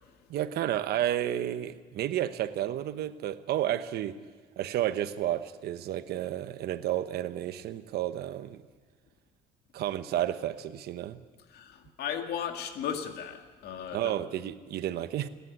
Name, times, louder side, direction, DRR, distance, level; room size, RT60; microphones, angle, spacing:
voice 1, 0.3-4.2 4.6-8.6 9.7-11.2 13.9-15.3, right 12 dB, 70° right, 12 dB, 1.1 m, -31 dB
voice 2, 11.5-14.1, left 8 dB, 70° left, 6 dB, 2.2 m, -36 dB
28.5 x 11.0 x 9.7 m, 1.4 s
cardioid pair, 110°, 17 cm